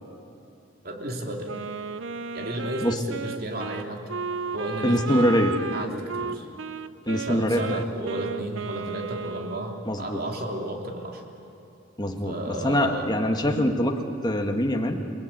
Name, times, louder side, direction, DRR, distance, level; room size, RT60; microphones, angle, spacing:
voice 1, 0.8-1.5 2.3-4.0 4.5-5.2 5.7-6.5 7.1-11.2 12.2-13.2 13.5-13.7, right 1 dB, 50° right, 1 dB, 3.0 m, -33 dB
Wind instrument woodwind instrument, 1.4-9.9, right 4 dB, 75° right, 0.7 m, -34 dB
voice 2, 4.8-5.6 7.1-7.8 9.9-10.2 12.0-15.0, equal, 20° left, 3 dB, 1.7 m, -24 dB
29.0 x 20.0 x 8.9 m, 2.7 s
head